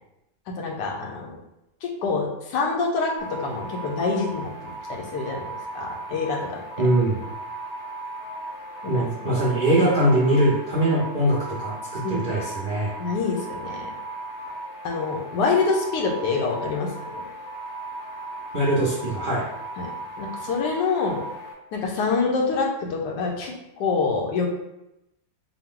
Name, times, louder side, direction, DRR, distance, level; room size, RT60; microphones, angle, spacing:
voice 1, 0.6-1.4 1.8-5.5 5.7-6.6 8.9-9.3 12.0-12.2 13.0-13.9 14.8-17.2 19.8-19.9 20.2-21.2 21.7-24.5, left 4 dB, 85° left, 0 dB, 1.4 m, -26 dB
sound 1, 3.2-21.5, right 2 dB, 55° left, 0.8 m, -36 dB
voice 2, 6.8-7.2 8.9-12.9 18.5-19.4, right 1 dB, 50° right, -6 dB, 0.6 m, -22 dB
4.5 x 2.0 x 3.7 m, 0.88 s
omnidirectional pair, 1.8 m